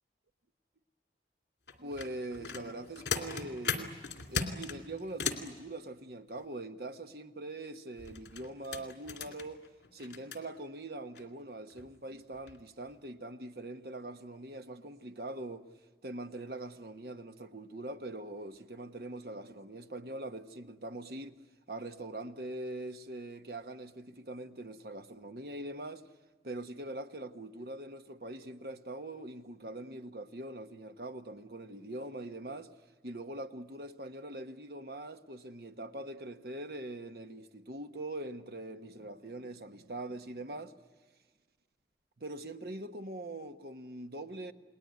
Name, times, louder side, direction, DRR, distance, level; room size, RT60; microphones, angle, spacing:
sound 1, 1.7-5.5 8.0-10.4 11.1-11.2 11.7-11.9 12.3-12.6 12.9-13.0, left 5 dB, 75° left, 2.6 m, -38 dB
voice 1, 1.8-4.0 4.3-9.6 9.9-15.7 16.0-21.4 21.7-26.0 26.4-32.7 33.0-40.7 42.2-44.5, right 1 dB, 60° right, 1.2 m, -43 dB
29.0 x 20.5 x 9.5 m
head